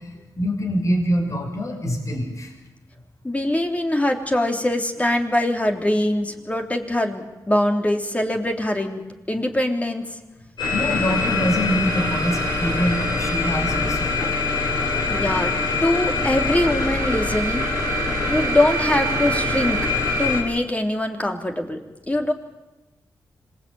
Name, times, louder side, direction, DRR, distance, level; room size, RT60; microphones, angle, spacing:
voice 1, 0.0-2.5 10.7-14.3, equal, 45° left, 1 dB, 6.1 m, -25 dB
voice 2, 3.2-9.0 9.3-10.1 15.1-15.5 15.8-17.7 18.3-19.8 20.2-21.8 22.1-22.3, left 1 dB, 20° left, 3 dB, 3.5 m, -22 dB
sound 1, 10.6-20.4, left 2 dB, 85° left, 7.2 m, -23 dB
26.0 x 20.5 x 9.0 m, 1.1 s
cardioid pair, 75°, 7 cm